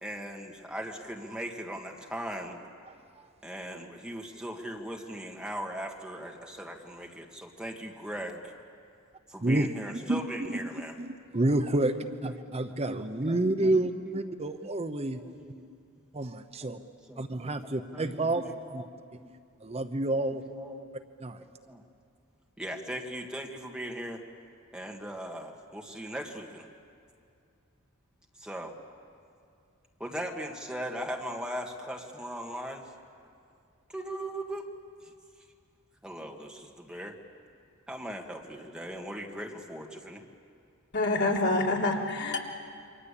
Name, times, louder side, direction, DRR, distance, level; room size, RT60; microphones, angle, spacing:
voice 1, 0.0-2.6 3.4-8.5 9.3-10.9 11.8-12.4 12.7-14.3 14.6-14.7 15.1-15.7 16.6-16.8 17.1-17.2 17.6-18.9 19.2-19.3 20.2-20.9 21.7-21.8 22.6-24.2 24.7-26.7 28.4-28.7 30.0-32.8 33.9-34.7 36.0-37.2 37.9-40.2, right 1 dB, 5° right, 1 dB, 2.1 m, -39 dB
voice 2, 11.0-11.9 12.2-15.2 16.1-16.8 17.2-18.8 19.6-20.4 21.2-21.4, right 2 dB, 30° right, 8 dB, 0.9 m, -29 dB
voice 3, 40.9-42.4, left 2 dB, 60° left, -1 dB, 3.5 m, -26 dB
28.5 x 24.5 x 8.6 m, 2.4 s
head